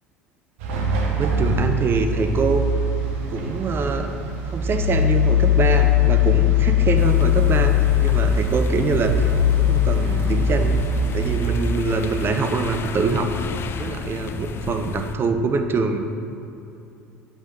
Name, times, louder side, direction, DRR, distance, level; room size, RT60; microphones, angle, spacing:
sound 1, 0.6-11.6, left 6 dB, 65° right, 0.8 m, -20 dB
voice 1, 1.1-2.7 3.3-4.1 4.5-10.8 11.1-13.3 13.8-16.0, right 4 dB, 30° right, 6 dB, 0.6 m, -24 dB
sound 2, 7.0-15.1, left 6 dB, 30° left, 0.3 m, -33 dB
7.9 x 4.0 x 3.7 m, 2.6 s
figure-of-eight pair, 70°, 8 cm